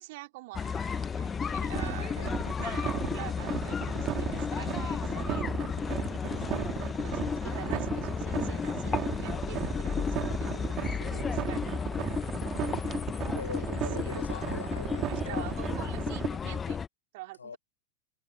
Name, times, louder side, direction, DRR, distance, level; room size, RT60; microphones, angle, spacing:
voice 1, 0.0-5.7 6.2-11.8 13.3-13.5 13.9-14.2 15.1-16.8 17.1-17.6, right 21 dB, 50° right, 4.5 m, -46 dB
sound 1, 0.5-16.9, left 6 dB, 20° left, 1.4 m, -33 dB
sound 2, 1.1-3.3 4.0-7.1 8.2-11.2 11.6-14.6, right 1 dB, 5° right, 5.9 m, -57 dB
voice 2, 1.7-2.5 13.3-15.8 17.4-17.6, left 5 dB, 75° left, 5.9 m, -43 dB
sound 3, 1.7-16.3, right 14 dB, 35° right, 4.8 m, -35 dB
figure-of-eight pair, 90°, 0 cm